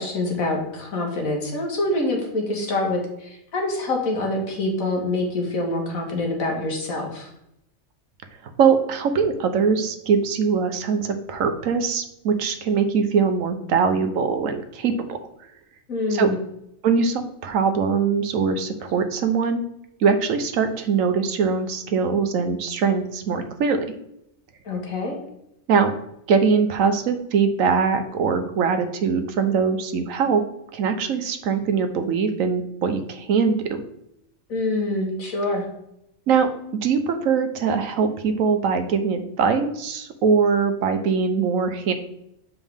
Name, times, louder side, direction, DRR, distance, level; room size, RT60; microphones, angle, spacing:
voice 1, 0.0-7.3 15.9-16.4 24.7-25.2 34.5-35.6, left 2 dB, 80° left, 1 dB, 2.0 m, -25 dB
voice 2, 8.6-15.2 16.1-16.3 16.8-19.6 20.0-23.9 25.7-25.9 26.3-30.5 30.7-33.8 36.3-41.9, right 5 dB, 75° right, 8 dB, 1.1 m, -22 dB
7.2 x 4.7 x 3.5 m, 0.80 s
omnidirectional pair, 1.4 m